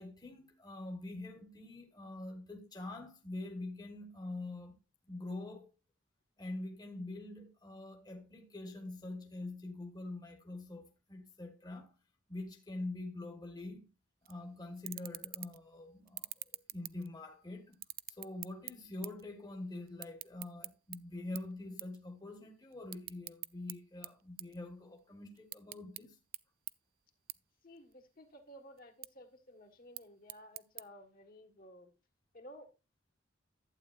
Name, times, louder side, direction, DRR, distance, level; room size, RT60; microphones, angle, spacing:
voice 1, 0.0-4.8 5.1-5.7 6.4-11.9 12.3-13.9 14.2-16.4 16.7-17.8 18.2-26.2, left 2 dB, 20° left, 1.3 m, -45 dB
sound 1, 14.2-14.4 14.8-15.7 16.1-17.3 17.7-19.3 19.5-21.0 21.4-21.5 21.8-22.0 22.3-23.7 24.0-25.0 25.4-26.0 26.3-26.4 26.7-26.8 27.3-27.4 27.8-28.3 28.8-29.1 29.7-30.8, right 18 dB, 50° right, 0.4 m, -44 dB
voice 2, 27.6-31.9 32.3-32.7, equal, 45° left, 1.6 m, -55 dB
11.5 x 8.6 x 2.5 m
head